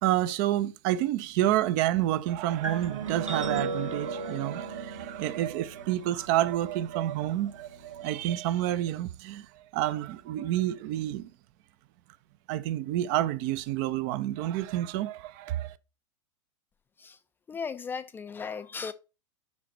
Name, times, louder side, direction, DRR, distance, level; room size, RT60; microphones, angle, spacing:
voice 1, 0.0-11.3 12.5-15.7, right 13 dB, 40° right, 0.6 m, -29 dB
sound 1, 2.6-8.3, right 3 dB, 85° right, 1.6 m, -37 dB
voice 2, 17.5-18.9, left 5 dB, 15° left, 0.4 m, -36 dB
5.8 x 5.3 x 5.9 m
figure-of-eight pair, 95°, 16 cm